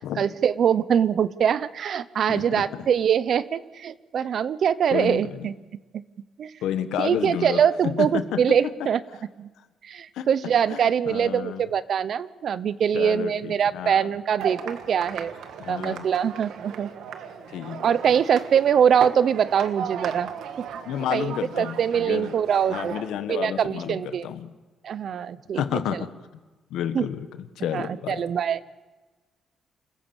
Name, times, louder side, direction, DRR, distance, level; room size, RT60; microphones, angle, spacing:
voice 1, 0.2-5.5 5.9-6.0 6.4-6.5 7.0-9.0 9.4-9.5 9.8-15.3 15.7-16.9 17.8-20.3 20.6-20.7 21.1-23.0 23.3-24.3 24.8-26.0 26.9-27.1 27.7-28.6, right 8 dB, 60° right, 17 dB, 0.8 m, -23 dB
voice 2, 2.3-2.6 4.9-5.5 6.6-8.2 10.1-10.3 10.7-11.7 12.9-14.1 15.6-16.1 17.5-17.9 20.8-22.3 22.7-24.5 25.5-26.1 26.7-27.3 27.6-28.2, left 10 dB, 85° left, 11 dB, 1.2 m, -30 dB
sound 1, 14.4-23.1, right 7 dB, 80° right, 1.6 m, -36 dB
27.0 x 15.0 x 7.2 m, 1.3 s
cardioid pair, 90°, 0 cm